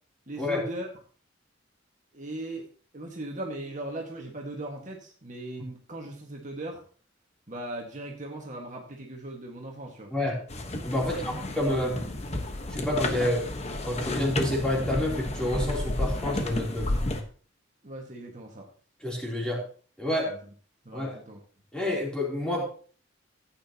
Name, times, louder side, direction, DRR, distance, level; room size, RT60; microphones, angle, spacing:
voice 1, 0.3-0.9 2.1-2.7 2.9-6.8 7.5-10.1 11.0-11.7 17.8-18.7 20.2-20.4 20.8-21.4, right 1 dB, 40° right, 0 dB, 1.7 m, -38 dB
voice 2, 10.1-10.4 10.8-12.0 12.7-13.5 13.8-16.9 19.0-19.7 20.0-20.4 20.9-21.2 21.7-22.6, left 1 dB, 5° left, -3 dB, 3.2 m, -29 dB
sound 1, 10.5-17.2, left 1 dB, 35° left, 1.2 m, -31 dB
15.0 x 8.9 x 2.9 m, 0.42 s
head